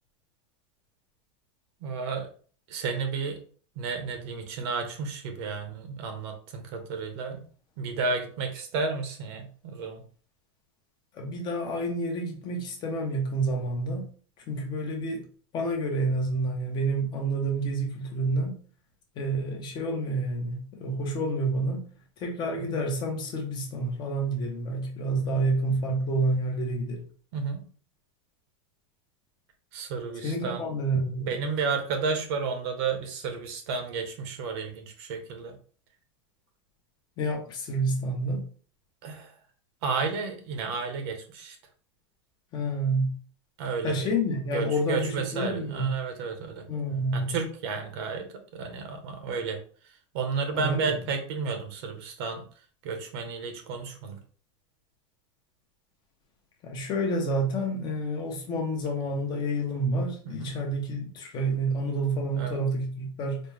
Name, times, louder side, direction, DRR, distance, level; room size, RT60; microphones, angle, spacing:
voice 1, 1.8-2.3 2.7-3.4 3.8-7.5 7.8-10.0 22.5-22.8 25.3-25.4 27.3-27.6 29.7-30.6 31.3-35.6 39.0-39.3 39.8-41.6 43.6-44.1 44.5-46.6 47.1-48.3 48.5-49.6 50.1-52.4 52.8-54.2 62.3-62.6, right 4 dB, 55° right, 5 dB, 0.9 m, -32 dB
voice 2, 11.1-14.1 14.5-15.2 15.5-18.6 19.2-21.8 22.2-27.0 30.2-31.3 37.2-38.4 42.5-43.2 43.8-45.9 46.7-47.3 50.5-50.9 56.6-63.4, right 1 dB, 30° left, 1 dB, 0.8 m, -29 dB
4.2 x 2.2 x 3.3 m, 0.43 s
supercardioid pair, 165°, 16 cm